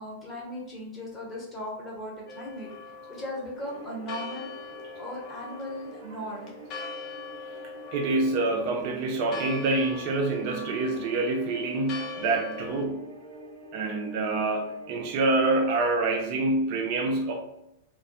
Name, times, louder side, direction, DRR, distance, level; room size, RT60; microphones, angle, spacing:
voice 1, 0.0-4.5 5.0-6.5, equal, 20° left, -4 dB, 1.0 m, -37 dB
Church bell, 2.3-12.8, left 4 dB, 40° left, 0.4 m, -42 dB
sound 1, 3.5-15.5, equal, 75° right, 0.7 m, -47 dB
voice 2, 7.9-13.1 13.7-17.3, right 2 dB, 50° right, 3 dB, 0.4 m, -26 dB
2.2 x 2.1 x 2.6 m, 0.84 s
hypercardioid pair, 100°, 0 cm